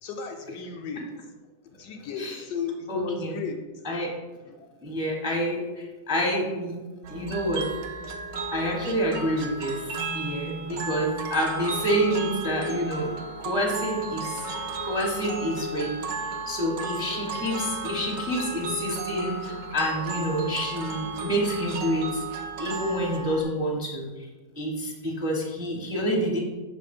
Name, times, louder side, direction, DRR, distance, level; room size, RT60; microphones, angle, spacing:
voice 1, 0.0-1.1 1.6-3.6 4.4-4.7 16.3-16.4, left 5 dB, 75° left, 4 dB, 1.0 m, -35 dB
voice 2, 2.9-3.4 3.8-4.1 4.8-6.8 7.1-7.6 8.5-13.1 13.4-15.9 16.5-22.2 22.6-24.3 24.5-26.4, equal, 5° right, -2 dB, 0.7 m, -28 dB
sound 1, 7.0-23.4, right 3 dB, 70° right, 0.6 m, -34 dB
6.2 x 3.3 x 5.2 m, 1.2 s
omnidirectional pair, 1.9 m